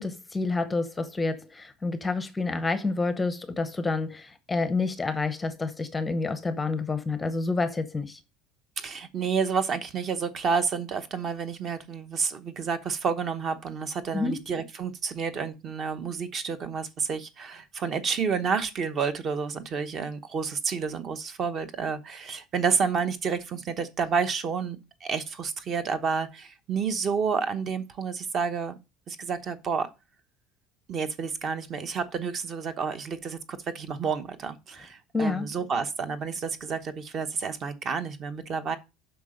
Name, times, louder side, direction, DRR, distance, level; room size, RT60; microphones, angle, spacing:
voice 1, 0.0-8.2 14.1-14.4 35.1-35.5, left 3 dB, 10° left, 0.8 m, -28 dB
voice 2, 8.8-28.8 29.1-29.9 30.9-38.8, right 5 dB, 30° right, 1.0 m, -30 dB
8.2 x 5.8 x 4.9 m
cardioid pair, 180°, 0 cm